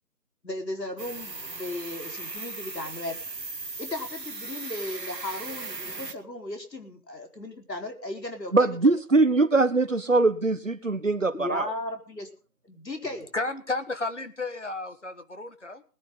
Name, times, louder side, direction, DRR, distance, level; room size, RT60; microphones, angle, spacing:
voice 1, 0.4-3.2 3.8-8.9 11.3-12.3 12.6-13.3, left 1 dB, 80° left, 4 dB, 4.5 m, -36 dB
sound 1, 1.0-6.1, right 3 dB, 80° right, 1.9 m, -38 dB
voice 2, 8.5-11.7, right 3 dB, 50° right, 12 dB, 1.3 m, -22 dB
voice 3, 13.3-15.8, left 2 dB, 45° left, 10 dB, 1.7 m, -32 dB
21.0 x 10.5 x 3.8 m, 0.39 s
figure-of-eight pair, 180°, 49 cm